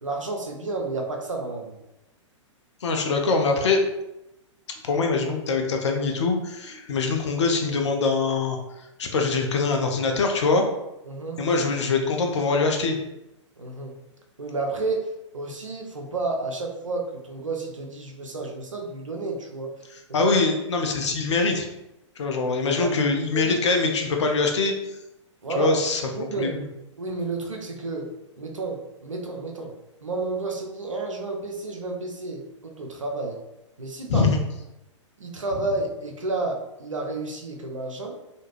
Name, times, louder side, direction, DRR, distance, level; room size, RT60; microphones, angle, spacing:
voice 1, 0.0-1.8 11.1-11.4 13.6-14.0 14.4-15.1 15.3-19.7 20.2-20.3 22.8-22.9 23.3-23.6 25.4-25.8 26.1-26.6 27.0-28.1 28.4-29.7 30.0-33.4 33.8-34.3 35.2-38.2, right 3 dB, 90° right, 1 dB, 0.5 m, -31 dB
voice 2, 2.8-3.8 4.8-10.7 11.4-13.0 20.1-21.7 22.2-24.7 25.6-26.0 26.4-26.7 34.1-34.4, left 4 dB, 65° left, 3 dB, 0.5 m, -23 dB
2.4 x 2.1 x 3.1 m, 0.92 s
figure-of-eight pair, 110°, 16 cm